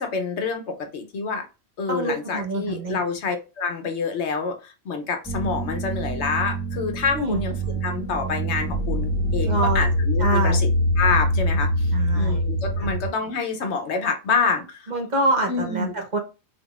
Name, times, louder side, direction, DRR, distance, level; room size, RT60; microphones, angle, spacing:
voice 1, 0.0-1.5 1.8-10.7 11.0-14.9 15.5-15.9, left 5 dB, 75° left, 1.1 m, -27 dB
voice 2, 1.9-3.0 7.1-7.4 9.4-9.8 10.2-10.6 11.9-12.4 12.8-12.9 14.9-16.2, right 2 dB, 45° right, 1.0 m, -26 dB
sound 1, 5.3-13.1, equal, 5° left, 1.2 m, -24 dB
3.8 x 3.7 x 2.4 m
omnidirectional pair, 1.1 m